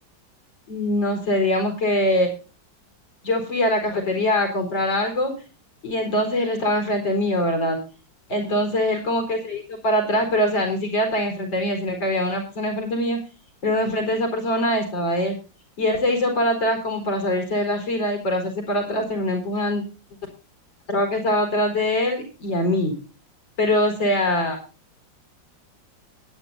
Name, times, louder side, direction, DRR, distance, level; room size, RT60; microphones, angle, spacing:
voice 1, 0.7-2.3 3.2-5.3 5.8-7.8 8.3-13.2 13.6-15.4 15.8-19.8 20.9-22.9 23.6-24.6, left 1 dB, 70° left, 4 dB, 5.0 m, -23 dB
21.0 x 9.7 x 2.7 m, 0.35 s
omnidirectional pair, 2.1 m